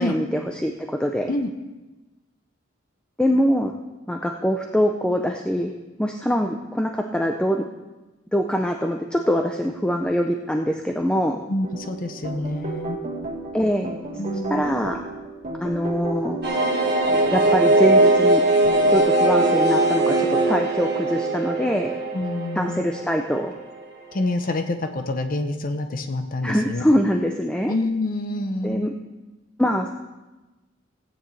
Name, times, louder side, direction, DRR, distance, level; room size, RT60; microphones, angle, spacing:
voice 1, 0.0-1.3 3.2-3.7 4.1-5.7 6.0-7.7 8.3-11.4 13.5-13.9 14.5-15.0 15.6-16.4 17.3-18.4 18.9-21.9 22.5-23.5 26.4-27.7 28.6-28.9 29.6-29.9, equal, 5° left, 3 dB, 0.5 m, -23 dB
voice 2, 11.5-13.0 14.2-14.7 22.1-22.9 24.1-26.8 27.7-28.9, left 2 dB, 45° left, 6 dB, 0.7 m, -27 dB
sound 1, 11.6-19.0, right 3 dB, 35° right, 1.7 m, -33 dB
sound 2, 16.4-23.9 24.2-24.3 24.5-24.6, right 2 dB, 55° right, 1.5 m, -20 dB
16.5 x 9.0 x 3.3 m, 1.1 s
head